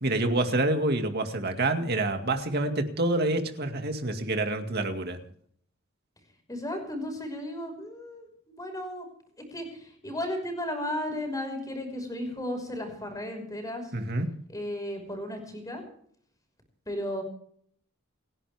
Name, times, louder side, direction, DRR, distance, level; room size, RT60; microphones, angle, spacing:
voice 1, 0.0-5.2 13.9-14.3, right 2 dB, 50° right, 5 dB, 2.2 m, -27 dB
voice 2, 6.5-9.0 9.5-13.9 14.5-15.8 16.9-17.2, left 1 dB, 15° left, 4 dB, 5.7 m, -34 dB
29.0 x 11.0 x 3.6 m, 0.62 s
head